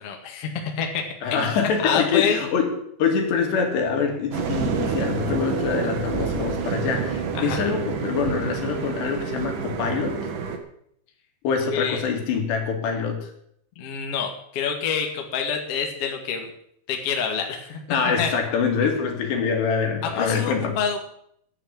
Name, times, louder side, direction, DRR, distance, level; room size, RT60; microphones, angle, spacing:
voice 1, 0.0-1.0 1.3-1.5 1.8-2.4 7.3-7.6 11.7-12.0 13.8-16.5 16.9-17.8 18.2-18.3 20.0-21.0, left 7 dB, 50° left, 2 dB, 2.0 m, -27 dB
voice 2, 1.2-2.7 3.0-10.2 11.4-13.3 17.9-20.8, left 6 dB, 70° left, 3 dB, 4.2 m, -25 dB
sound 1, 4.3-10.6, right 6 dB, 60° right, 2.3 m, -28 dB
11.5 x 10.0 x 7.5 m, 0.69 s
omnidirectional pair, 5.3 m